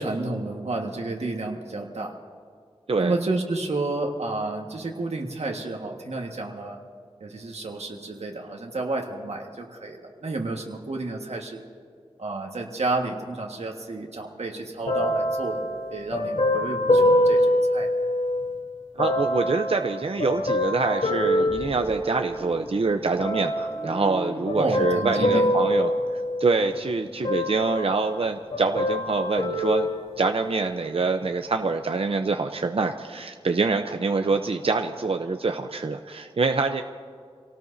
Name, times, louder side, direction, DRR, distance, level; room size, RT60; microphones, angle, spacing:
voice 1, 0.0-2.2 3.0-6.8 7.2-11.6 12.2-17.9 24.6-25.5, right 2 dB, 90° right, 1 dB, 1.6 m, -30 dB
sound 1, 14.9-18.5 19.0-22.5 23.2-23.8 24.5-26.8 27.2-28.3 28.5-30.6 31.2-31.3, left 1 dB, 75° left, 3.4 m, -25 dB
voice 2, 19.0-29.9 30.2-36.8, right 4 dB, 60° right, 5 dB, 0.7 m, -25 dB
sound 2, 21.1-25.3, left 1 dB, 20° left, 4.2 m, -41 dB
28.0 x 18.0 x 2.7 m, 2.2 s
wide cardioid pair, 75°, 11 cm